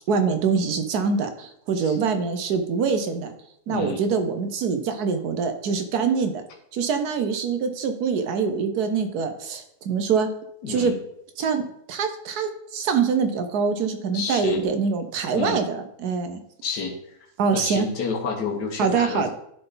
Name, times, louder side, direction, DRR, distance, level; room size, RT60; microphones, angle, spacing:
voice 1, 0.1-3.3 3.7-6.4 6.7-10.3 10.7-10.9 11.4-11.6 11.9-16.4 17.4-17.9 18.8-19.3, right 5 dB, 70° right, 7 dB, 1.4 m, -24 dB
voice 2, 3.7-4.0 10.6-11.0 14.1-14.6 15.3-15.6 16.6-16.9 17.5-19.3, left 5 dB, 85° left, 3 dB, 1.6 m, -29 dB
11.5 x 3.9 x 3.9 m, 0.73 s
omnidirectional pair, 1.7 m